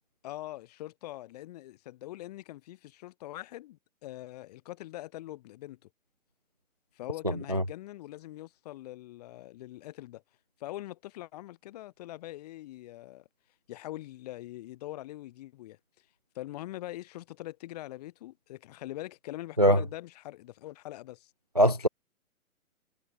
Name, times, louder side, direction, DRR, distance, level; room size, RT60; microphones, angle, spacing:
voice 1, 0.2-5.9 6.9-10.2 10.6-13.3 13.7-15.8 16.3-21.3, left 16 dB, 30° left, 6.3 m, -43 dB
voice 2, 21.6-21.9, equal, 30° right, 0.4 m, -21 dB
hypercardioid pair, 170°, 43 cm